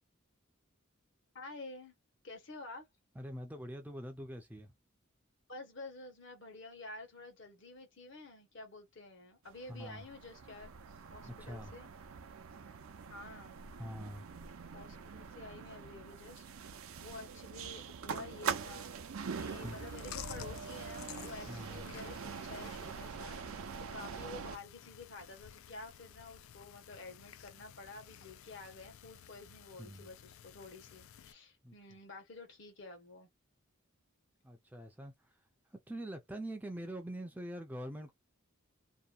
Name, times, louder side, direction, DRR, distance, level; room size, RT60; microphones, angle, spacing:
voice 1, 1.3-1.9 2.2-2.9 5.5-10.7 11.1-11.9 13.1-13.6 14.7-33.3, left 2 dB, 60° left, 1.1 m, -50 dB
voice 2, 3.2-4.7 9.7-10.1 11.2-11.7 13.8-14.3 19.6-19.9 21.5-21.9 29.8-30.1 31.6-31.7 34.4-35.4 35.7-38.1, equal, 10° right, 0.4 m, -44 dB
sound 1, 9.5-24.6, right 6 dB, 80° right, 0.5 m, -44 dB
Chewing mastication, 19.5-31.3, left 9 dB, 80° left, 0.4 m, -53 dB
2.8 x 2.2 x 2.4 m
head